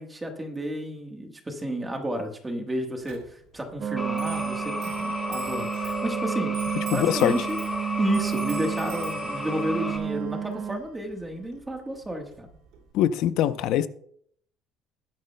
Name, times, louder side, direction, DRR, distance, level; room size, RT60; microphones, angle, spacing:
voice 1, 0.0-6.6 6.9-7.6 8.0-12.5, equal, 10° right, 1.3 m, -32 dB
Clock, 3.0-12.9, right 9 dB, 70° right, 2.2 m, -45 dB
sound 1, 3.8-10.8, right 8 dB, 30° right, 0.4 m, -31 dB
sound 2, 4.0-10.0, left 2 dB, 10° left, 1.3 m, -33 dB
voice 2, 6.9-7.3 12.9-13.9, left 11 dB, 55° left, 0.6 m, -22 dB
21.5 x 9.7 x 2.2 m
cardioid pair, 175°, 0 cm